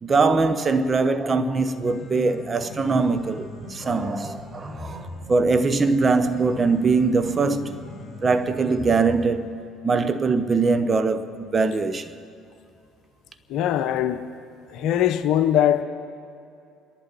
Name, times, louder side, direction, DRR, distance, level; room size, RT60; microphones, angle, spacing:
voice 1, 0.0-7.8 8.2-12.2, right 4 dB, 30° right, 1.1 m, -22 dB
Piano, 1.7-9.7, left 1 dB, ahead, 4.7 m, -38 dB
voice 2, 13.5-14.2 14.7-15.8, left 11 dB, 65° left, 0.9 m, -21 dB
29.0 x 11.5 x 4.2 m
hypercardioid pair, 65°, 0 cm